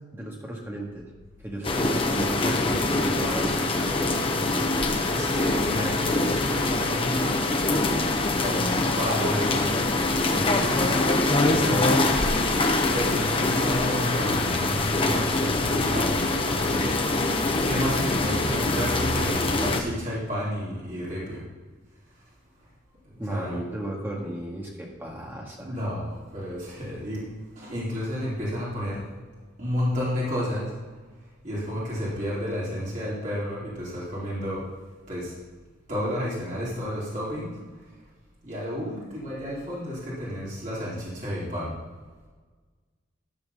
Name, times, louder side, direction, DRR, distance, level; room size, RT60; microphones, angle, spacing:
voice 1, 0.1-1.1 1.4-4.4 23.2-25.7, right 1 dB, 10° right, -2 dB, 1.8 m, -35 dB
sound 1, 1.6-19.8, left 2 dB, 30° left, 0.9 m, -24 dB
voice 2, 5.1-12.0 12.9-17.0 17.6-21.4 23.1-23.6 25.6-27.2 27.5-29.0 29.6-30.7 31.4-34.7 35.1-35.3 35.9-37.5 38.4-41.7, equal, 40° right, -8 dB, 3.3 m, -31 dB
12.5 x 4.6 x 6.8 m, 1.4 s
head